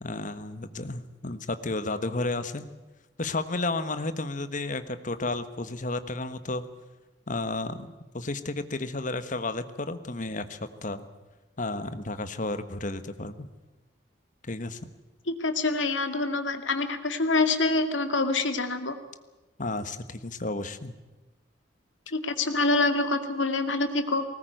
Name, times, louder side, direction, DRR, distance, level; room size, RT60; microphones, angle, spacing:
voice 1, 0.0-2.7 3.2-6.6 7.3-7.9 8.1-11.0 11.6-13.5 14.4-14.8 19.6-20.9, left 2 dB, 45° left, 11 dB, 1.4 m, -32 dB
voice 2, 15.4-19.0 22.1-24.2, left 3 dB, 90° left, 8 dB, 2.2 m, -26 dB
20.5 x 19.0 x 9.2 m, 1.1 s
head